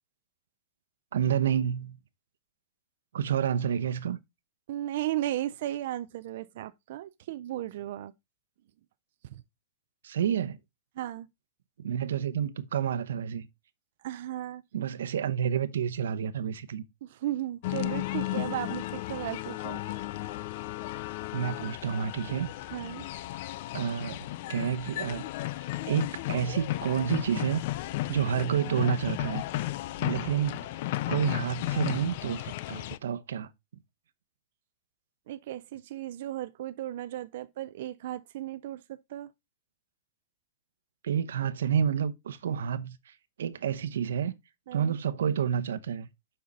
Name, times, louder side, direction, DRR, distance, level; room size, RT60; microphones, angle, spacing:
voice 1, 1.1-2.0 3.1-4.2 10.0-10.6 11.8-13.5 14.7-16.8 21.3-22.5 23.7-25.2 25.8-27.6 28.1-29.4 30.0-30.7 31.1-33.5 41.0-44.3 44.7-46.1, right 8 dB, 90° right, 0.9 m, -29 dB
voice 2, 4.7-8.1 9.3-9.4 11.0-11.3 14.0-14.6 17.0-19.8 22.7-23.1 35.3-39.3 44.7-45.0, right 13 dB, 45° right, 0.4 m, -35 dB
sound 1, 17.6-33.0, left 16 dB, 35° left, 0.4 m, -34 dB
7.5 x 5.6 x 4.0 m
supercardioid pair, 180°, 0 cm